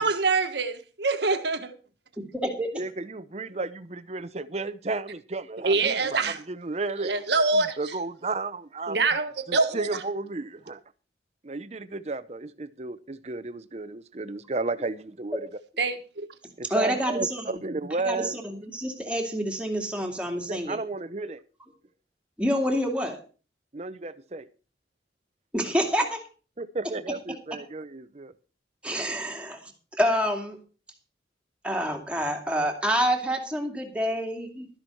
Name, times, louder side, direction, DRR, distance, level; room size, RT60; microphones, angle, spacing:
voice 1, 0.0-1.7 5.6-6.4 7.0-7.9 8.9-9.9 15.8-16.3, right 3 dB, 70° right, 1.4 m, -25 dB
voice 2, 2.2-2.7 16.7-17.6 18.0-20.8 22.4-23.2 25.5-26.0 28.8-29.7 30.0-30.6 31.6-34.7, equal, 5° right, 2.4 m, -27 dB
voice 3, 2.7-6.2 6.5-7.1 7.5-9.0 9.5-10.8 11.4-15.5 16.6-18.4 20.5-21.4 23.7-24.5 26.6-28.3, right 3 dB, 35° right, 0.7 m, -33 dB
12.5 x 10.5 x 4.5 m
head